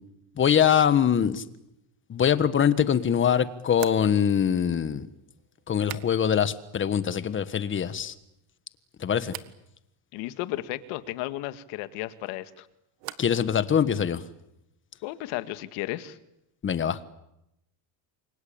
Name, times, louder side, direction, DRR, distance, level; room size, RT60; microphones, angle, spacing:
voice 1, 0.4-1.4 2.1-5.1 5.7-8.1 9.0-9.3 13.2-14.2 16.6-17.0, left 8 dB, 25° left, 14 dB, 1.4 m, -23 dB
sound 1, 2.5-2.6 3.7-6.6 6.8-7.5 7.8-8.4 9.3-9.6 12.0-13.5 13.7-14.4, right 17 dB, 80° right, 1.8 m, -45 dB
voice 2, 10.1-12.7 15.0-16.2, left 16 dB, 75° left, 12 dB, 2.0 m, -34 dB
29.0 x 23.5 x 8.8 m, 0.86 s
cardioid pair, 145°, 46 cm